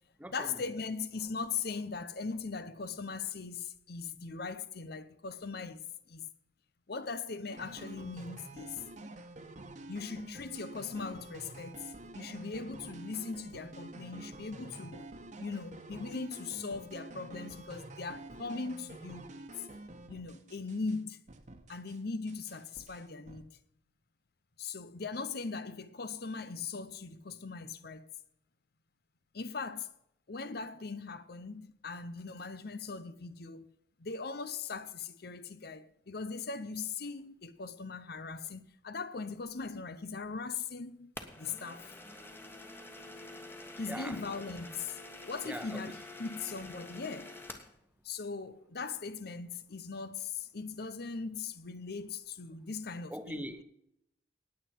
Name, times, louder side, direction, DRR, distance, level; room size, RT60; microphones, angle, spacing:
voice 1, 0.3-6.3 6.9-8.8 9.9-15.1 15.4-19.7 20.1-21.2 21.7-23.5 24.6-28.1 29.3-29.9 30.3-33.7 34.0-41.1 41.4-41.9 43.8-47.4 48.0-53.5, left 4 dB, 60° left, 0.8 m, -40 dB
sound 1, 7.5-21.0 21.3-22.0 22.3-23.4, right 2 dB, 45° right, 1.4 m, -48 dB
sound 2, 41.2-47.8, left 2 dB, 10° left, 1.4 m, -48 dB
voice 2, 43.9-44.2 45.4-45.8 53.1-53.6, equal, 10° right, 1.1 m, -41 dB
19.0 x 8.1 x 4.6 m
head